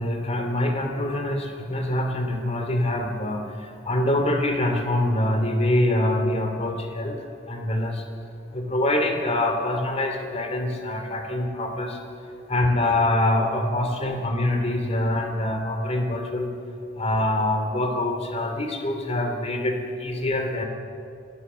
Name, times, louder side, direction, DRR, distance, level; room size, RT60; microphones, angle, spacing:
voice 1, 0.0-3.4 3.9-7.1 7.5-8.0 8.5-12.0 12.5-16.5 17.0-20.6, left 1 dB, 35° left, 4 dB, 2.7 m, -24 dB
26.5 x 17.5 x 6.9 m, 2.6 s
head